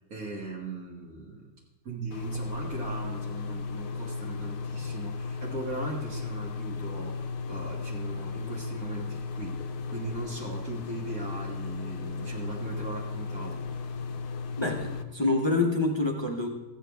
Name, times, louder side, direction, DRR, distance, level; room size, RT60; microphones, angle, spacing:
voice 1, 0.0-1.5 1.8-9.6 9.9-13.9, right 3 dB, 60° right, -4 dB, 1.7 m, -39 dB
sound 1, 2.1-15.0, left 4 dB, 70° left, 1.2 m, -35 dB
voice 2, 14.6-16.5, left 2 dB, 25° left, 1 dB, 0.6 m, -26 dB
14.0 x 9.0 x 3.4 m, 1.1 s
omnidirectional pair, 1.7 m